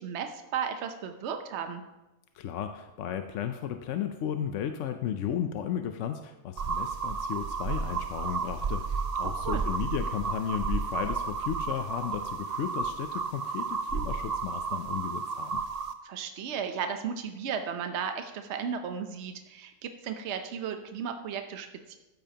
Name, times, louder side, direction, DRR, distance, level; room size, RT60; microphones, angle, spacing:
voice 1, 0.0-1.8 9.2-9.6 16.0-22.0, right 7 dB, 65° right, 6 dB, 1.0 m, -35 dB
voice 2, 2.3-15.6, left 9 dB, 75° left, 7 dB, 0.9 m, -34 dB
sound 1, 6.6-15.9, right 5 dB, 45° right, 0.5 m, -32 dB
13.5 x 8.8 x 2.8 m, 1.0 s
omnidirectional pair, 1.3 m